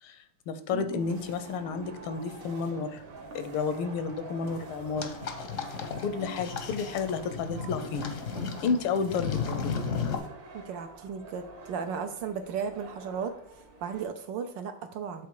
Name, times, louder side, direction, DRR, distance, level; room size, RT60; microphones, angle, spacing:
voice 1, 0.0-3.0 3.3-5.1 6.0-8.2 8.6-9.8, left 5 dB, 80° left, 10 dB, 1.6 m, -31 dB
voice 2, 0.7-1.1 10.5-13.3 13.8-15.3, right 6 dB, 70° right, 7 dB, 1.2 m, -35 dB
sound 1, 0.7-10.3, right 4 dB, 85° right, 2.0 m, -51 dB
sound 2, 1.0-14.0, right 3 dB, 50° right, 1.2 m, -47 dB
sound 3, 5.0-10.2, left 6 dB, 55° left, 0.9 m, -34 dB
8.3 x 3.8 x 4.6 m, 0.71 s
omnidirectional pair, 2.3 m